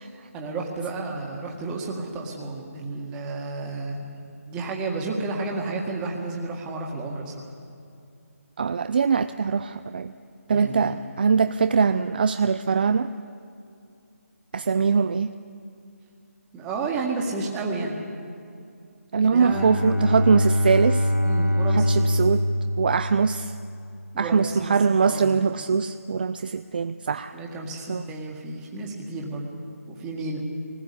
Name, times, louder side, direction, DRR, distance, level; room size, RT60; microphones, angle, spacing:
voice 1, 0.1-7.5 10.5-11.0 16.5-18.0 19.2-20.0 21.2-22.0 24.1-24.7 25.0-25.4 27.3-29.5 29.9-30.4, right 3 dB, 10° right, -1 dB, 1.9 m, -32 dB
voice 2, 8.6-10.1 10.5-13.1 14.5-15.3 19.1-21.1 21.7-22.4 22.8-23.5 24.2-27.3 27.9-28.0, right 5 dB, 35° right, 11 dB, 0.5 m, -22 dB
Bowed string instrument, 19.3-23.8, equal, 65° left, 2.2 m, -24 dB
21.5 x 19.5 x 8.5 m, 2.5 s
figure-of-eight pair, 170°, 8 cm